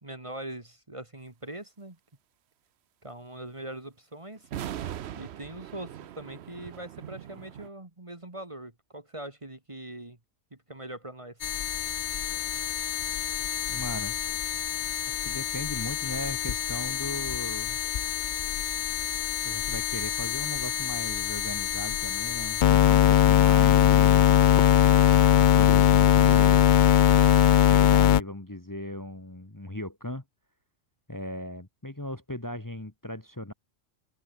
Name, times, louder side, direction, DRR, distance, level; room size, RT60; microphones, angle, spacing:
voice 1, 0.0-2.0 3.0-4.5 5.1-10.2 10.5-11.4, right 1 dB, 25° right, 2.0 m, -42 dB
sound 1, 4.4-7.7, right 11 dB, 65° right, 0.9 m, -40 dB
sound 2, 11.4-28.2, left 11 dB, 65° left, 0.5 m, -22 dB
voice 2, 13.7-14.2 15.1-17.8 19.4-24.4 27.7-30.2 31.1-33.5, left 1 dB, 15° left, 1.6 m, -38 dB
omnidirectional pair, 1.3 m